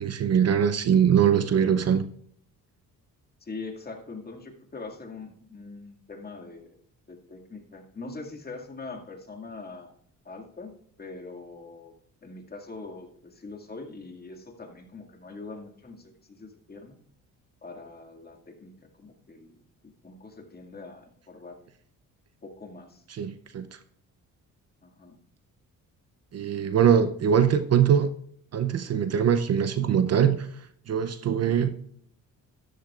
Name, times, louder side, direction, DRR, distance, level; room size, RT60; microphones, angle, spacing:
voice 1, 0.0-2.1 23.1-23.7 26.3-28.1 28.5-30.5 30.9-31.7, right 8 dB, 50° right, 11 dB, 0.7 m, -22 dB
voice 2, 3.4-6.8 7.1-9.9 10.2-10.7 11.0-11.9 12.2-17.0 17.6-19.6 20.0-21.6 22.4-23.0 24.8-25.2 31.5-31.6, left 3 dB, 30° left, 2 dB, 2.1 m, -42 dB
13.0 x 11.5 x 2.5 m, 0.65 s
cardioid pair, 105°, 33 cm